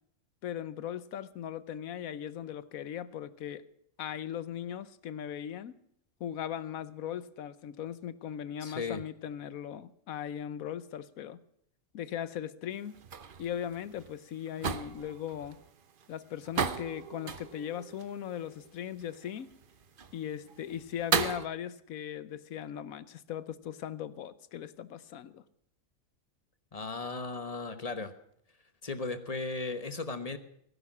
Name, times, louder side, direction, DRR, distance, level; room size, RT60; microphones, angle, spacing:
voice 1, 0.4-3.6 4.0-5.8 6.2-11.4 11.9-12.9 13.4-15.6 16.1-19.5 20.1-25.4, left 9 dB, 85° left, 16 dB, 1.2 m, -38 dB
voice 2, 8.6-9.0 26.7-28.1 28.8-30.4, left 3 dB, 30° left, 10 dB, 1.1 m, -36 dB
sound 1, 12.7-21.5, right 6 dB, 45° right, 0.9 m, -37 dB
18.0 x 11.0 x 6.1 m, 0.71 s
omnidirectional pair, 1.4 m